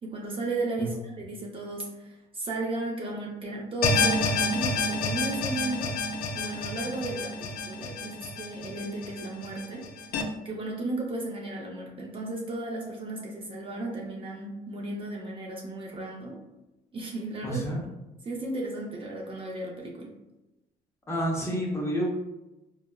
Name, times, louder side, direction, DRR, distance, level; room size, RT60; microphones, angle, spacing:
voice 1, 0.0-5.9 6.3-9.8 10.4-16.4 16.9-17.6 18.2-20.1, right 2 dB, 30° right, -2 dB, 0.5 m, -35 dB
sound 1, 3.8-10.2, left 3 dB, 60° left, 0.4 m, -29 dB
voice 2, 17.4-17.8 21.1-22.1, equal, 15° left, -3 dB, 0.7 m, -29 dB
3.5 x 2.0 x 2.2 m, 1.0 s
cardioid pair, 110°, 17 cm